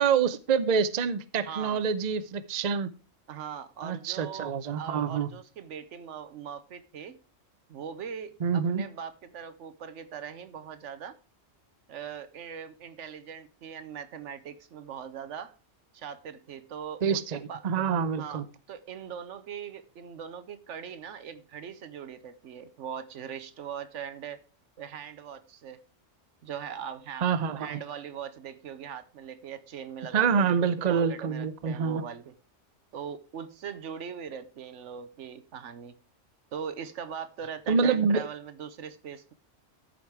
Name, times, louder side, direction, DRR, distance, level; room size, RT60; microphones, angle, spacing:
voice 1, 0.0-2.9 3.8-5.3 8.4-8.9 17.0-18.4 27.2-27.7 30.1-32.0 37.7-38.2, right 6 dB, 45° right, 0.7 m, -26 dB
voice 2, 1.4-1.8 3.3-7.2 7.7-11.2 11.9-15.6 15.9-17.6 18.2-24.4 24.8-25.8 26.4-27.3 27.6-30.5 30.9-32.3 32.9-35.9 36.5-39.3, right 7 dB, 80° right, 1.1 m, -41 dB
13.5 x 5.2 x 4.6 m
omnidirectional pair, 1.2 m